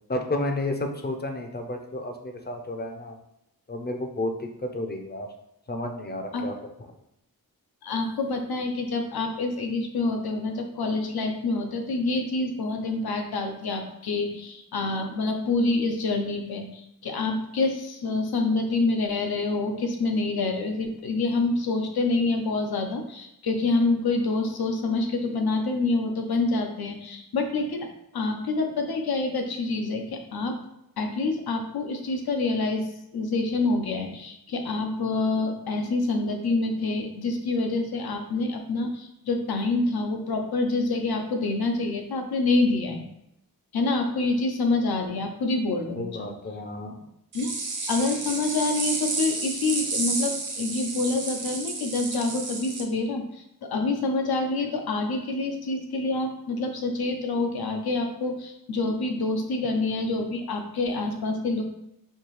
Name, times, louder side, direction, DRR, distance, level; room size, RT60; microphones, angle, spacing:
voice 1, 0.1-3.2 3.7-5.3 5.7-6.5 46.0-47.1, left 1 dB, 25° left, 4 dB, 0.5 m, -31 dB
voice 2, 7.8-27.9 28.1-30.6 31.0-43.0 43.7-46.3 47.3-47.5 47.9-61.6, left 3 dB, 80° left, 4 dB, 0.7 m, -27 dB
sound 1, 47.3-52.8, right 3 dB, 55° right, 0.8 m, -31 dB
4.6 x 2.7 x 3.0 m, 0.82 s
wide cardioid pair, 95°, 37 cm